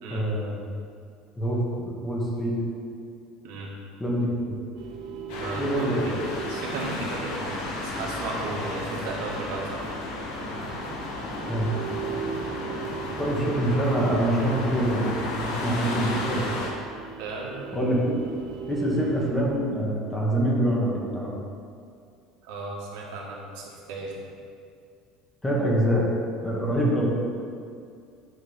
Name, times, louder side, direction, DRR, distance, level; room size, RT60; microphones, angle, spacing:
voice 1, 0.1-0.6 1.4-2.6 4.0-4.6 5.6-6.1 11.5-11.7 13.2-16.5 16.9-17.0 17.7-18.1 18.7-21.3 25.4-26.1 26.4-27.1, right 1 dB, 10° left, -4 dB, 1.1 m, -25 dB
sound 1, 4.8-19.3, right 7 dB, 50° right, 0.8 m, -39 dB
sound 2, 5.3-16.7, left 2 dB, 65° left, 1.4 m, -33 dB
voice 2, 5.3-6.2 6.5-9.9 17.2-17.6 22.4-24.2, right 3 dB, 75° right, -3 dB, 1.7 m, -35 dB
9.6 x 3.6 x 5.5 m, 2.3 s
cardioid pair, 175°, 0 cm